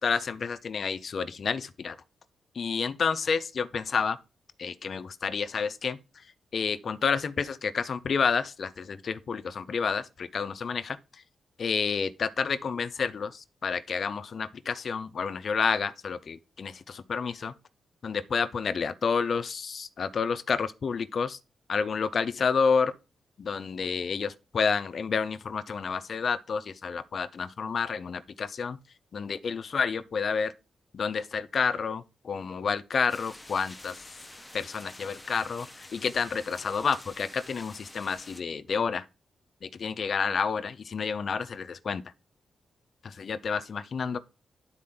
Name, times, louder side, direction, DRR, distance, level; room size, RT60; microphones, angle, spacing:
voice 1, 0.0-2.0 2.6-4.2 4.6-6.0 6.5-11.0 11.6-17.5 18.0-21.4 21.7-22.9 23.4-28.8 29.1-30.5 30.9-34.0 34.5-39.0 39.6-42.0 43.0-44.2, left 5 dB, 50° left, 0.4 m, -29 dB
sound 1, 33.1-38.4, left 1 dB, 10° left, 0.7 m, -48 dB
11.0 x 4.2 x 3.7 m
wide cardioid pair, 145°, 0 cm